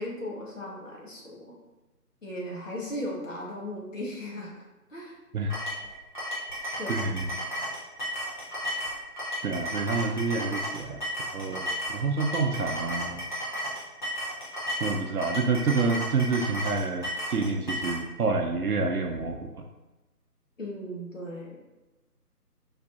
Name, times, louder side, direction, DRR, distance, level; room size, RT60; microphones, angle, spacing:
voice 1, 0.0-1.5 2.2-5.2 6.8-6.9 20.6-21.6, left 1 dB, 50° left, -3 dB, 1.4 m, -37 dB
sound 1, 5.5-18.0, equal, 30° left, 1.0 m, -33 dB
voice 2, 6.9-7.3 9.4-11.0 11.3-13.3 14.8-19.6, right 4 dB, 65° right, 3 dB, 0.6 m, -28 dB
4.8 x 4.5 x 2.5 m, 1.1 s
figure-of-eight pair, 160°, 48 cm